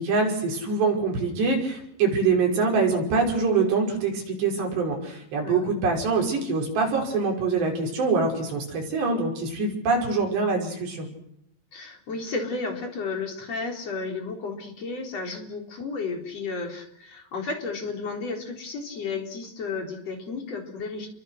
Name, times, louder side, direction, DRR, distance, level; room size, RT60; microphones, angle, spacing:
voice 1, 0.0-11.1, right 4 dB, 65° right, 1 dB, 7.6 m, -24 dB
voice 2, 11.7-21.1, left 4 dB, 35° left, 3 dB, 4.5 m, -33 dB
30.0 x 23.5 x 6.4 m, 0.75 s
omnidirectional pair, 5.2 m